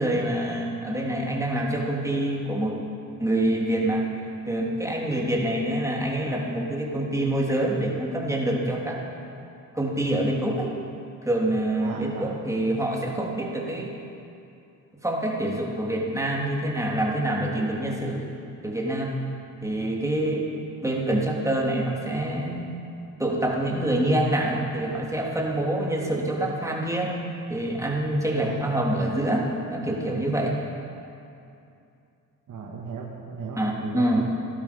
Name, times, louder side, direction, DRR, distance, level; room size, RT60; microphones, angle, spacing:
voice 1, 0.0-2.8 3.2-4.1 4.5-9.0 9.7-10.7 11.2-14.0 15.0-18.3 18.6-19.2 19.6-20.5 20.8-22.7 23.2-27.1 27.5-30.5 33.6-34.2, right 1 dB, 10° right, -2 dB, 3.3 m, -26 dB
voice 2, 11.8-12.3 28.3-28.6 32.5-34.2, right 5 dB, 55° right, -1 dB, 1.9 m, -36 dB
16.5 x 12.0 x 5.5 m, 2.6 s
supercardioid pair, 60°, 37 cm